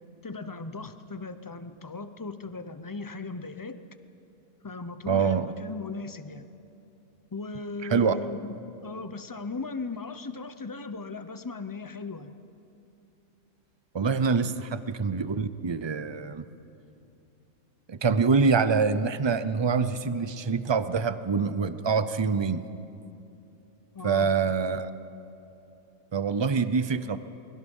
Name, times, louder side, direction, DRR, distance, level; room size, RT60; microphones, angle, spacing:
voice 1, 0.2-3.8 4.6-6.5 7.3-8.5 8.8-12.3 23.9-24.3, left 3 dB, 20° left, 10 dB, 0.5 m, -37 dB
voice 2, 5.1-5.5 7.9-8.2 13.9-16.4 17.9-22.7 24.0-24.9 26.1-27.2, right 5 dB, 45° right, 12 dB, 0.3 m, -25 dB
28.0 x 21.5 x 5.5 m, 2.8 s
omnidirectional pair, 1.5 m